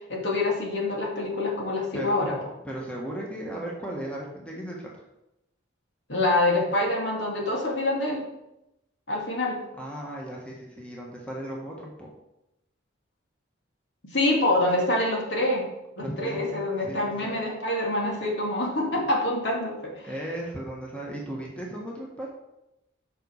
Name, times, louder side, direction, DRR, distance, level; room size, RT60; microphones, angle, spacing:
voice 1, 0.1-2.4 6.1-8.2 9.1-9.6 14.1-15.7 16.0-20.1, left 2 dB, 65° left, -1 dB, 2.3 m, -26 dB
voice 2, 2.6-5.0 9.8-12.1 16.0-17.3 20.0-22.3, right 1 dB, 5° left, -2 dB, 1.4 m, -36 dB
7.9 x 5.5 x 6.4 m, 0.90 s
head